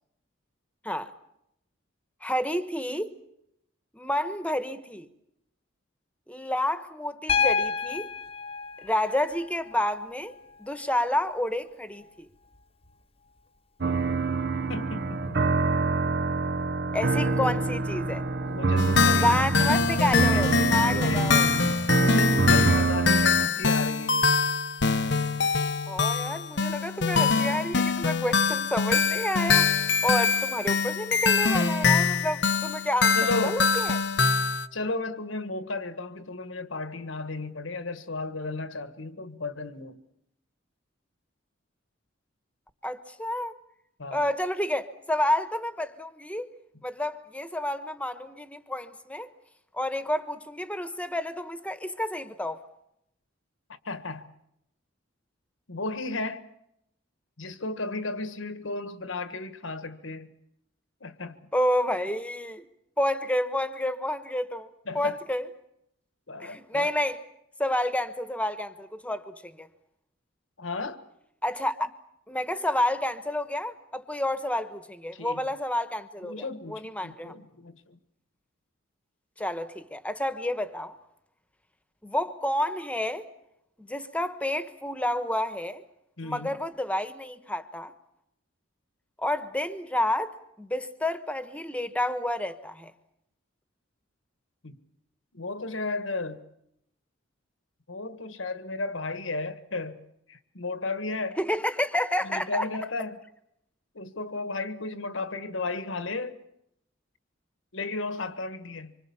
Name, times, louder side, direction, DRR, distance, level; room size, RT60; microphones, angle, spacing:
voice 1, 2.2-3.2 3.9-5.1 6.3-8.1 8.8-10.3 10.6-12.3 16.9-18.2 19.1-21.5 25.9-33.2 33.4-34.0 42.8-43.5 44.1-46.5 46.8-49.3 49.7-52.6 61.5-62.7 63.0-64.7 64.9-65.4 66.4-67.2 67.6-69.7 71.4-71.9 72.3-77.3 79.4-81.0 82.0-83.3 83.8-85.8 86.2-87.9 89.2-92.9 101.4-102.6, left 1 dB, 5° left, 1.3 m, -29 dB
Piano, 7.3-11.3 12.9-13.0, left 6 dB, 30° left, 1.0 m, -30 dB
sound 1, 13.8-23.5, right 3 dB, 55° right, 1.0 m, -26 dB
voice 2, 14.7-15.8 17.2-17.6 18.5-19.7 20.3-20.5 20.8-21.3 21.9-24.4 33.1-33.6 34.7-40.0 44.0-44.3 53.7-54.3 55.7-56.4 57.4-60.3 61.0-61.4 64.9-65.2 66.3-66.9 70.6-71.0 75.1-75.5 76.2-78.0 86.2-86.6 94.6-94.8 95.3-96.5 97.9-101.4 102.2-103.2 104.0-106.4 107.7-109.0, left 3 dB, 75° left, 1.6 m, -34 dB
sound 2, 18.8-34.7, left 4 dB, 60° left, 0.9 m, -24 dB
26.0 x 25.0 x 7.1 m
head